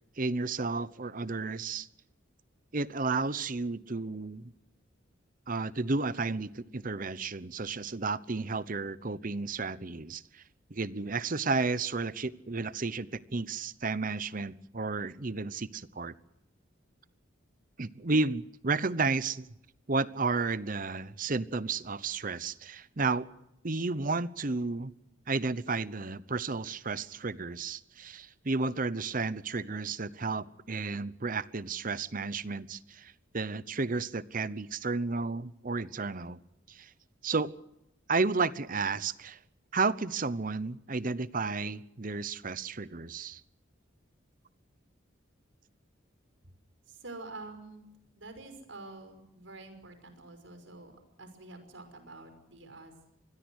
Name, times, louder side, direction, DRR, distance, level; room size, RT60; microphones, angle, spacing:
voice 1, 0.2-1.9 2.7-4.5 5.5-10.4 10.7-16.1 17.8-19.5 19.9-23.3 23.6-24.9 25.3-36.4 36.7-36.9 37.2-37.5 38.1-39.4 39.7-43.4, right 3 dB, 45° right, 17 dB, 0.9 m, -32 dB
voice 2, 46.9-47.8 48.1-52.9, right 2 dB, 75° right, 8 dB, 5.8 m, -47 dB
27.0 x 21.0 x 6.4 m, 0.83 s
head